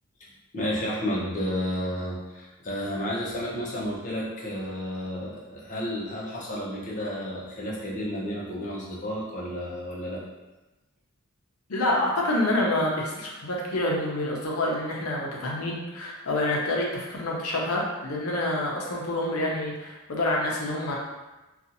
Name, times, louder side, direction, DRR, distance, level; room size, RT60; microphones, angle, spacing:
voice 1, 0.5-10.2, equal, 35° left, -6 dB, 0.7 m, -31 dB
voice 2, 11.7-21.0, left 1 dB, 75° left, -2 dB, 0.6 m, -27 dB
2.7 x 2.4 x 2.6 m, 1.1 s
head